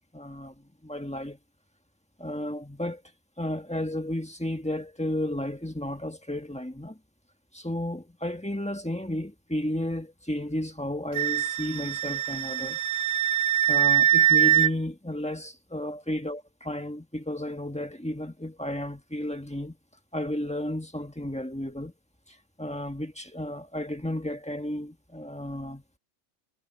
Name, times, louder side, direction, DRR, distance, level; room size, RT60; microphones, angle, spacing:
voice 1, 0.1-1.4 2.2-3.0 3.4-7.0 7.5-12.8 13.7-19.8 20.1-21.9 22.6-25.8, left 1 dB, 5° left, 1.5 m, -33 dB
Wind instrument woodwind instrument, 11.2-14.7, right 11 dB, 90° right, 1.0 m, -23 dB
omnidirectional pair, 1.2 m